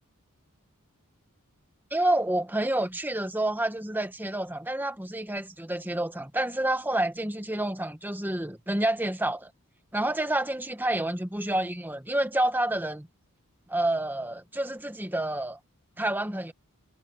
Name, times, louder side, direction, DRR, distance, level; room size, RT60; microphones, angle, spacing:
voice 1, 1.9-9.5 9.9-13.1 13.7-15.6 16.0-16.5, right 1 dB, 10° right, 1.7 m, -28 dB
head